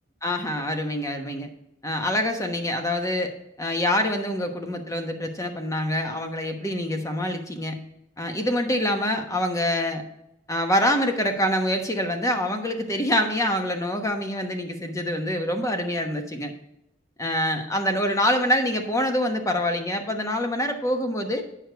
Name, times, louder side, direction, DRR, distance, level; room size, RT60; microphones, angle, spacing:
voice 1, 0.2-1.5 1.8-3.3 3.6-7.8 8.2-10.0 10.5-16.5 17.2-21.4, left 1 dB, 15° left, 5 dB, 1.1 m, -25 dB
8.8 x 6.6 x 4.6 m, 0.83 s
head